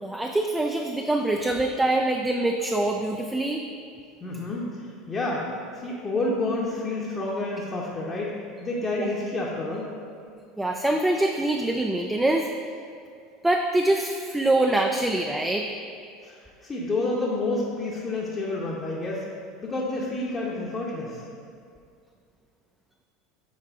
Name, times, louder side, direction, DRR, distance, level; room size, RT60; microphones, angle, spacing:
voice 1, 0.0-3.6 9.0-9.1 10.6-12.5 13.4-15.7, right 2 dB, 10° right, 2 dB, 0.4 m, -24 dB
voice 2, 4.2-5.5 5.7-8.3 8.6-9.9 16.2-19.2 19.6-21.2, left 2 dB, 25° left, -5 dB, 0.9 m, -29 dB
7.3 x 4.7 x 3.6 m, 2.3 s
figure-of-eight pair, 75°, 0 cm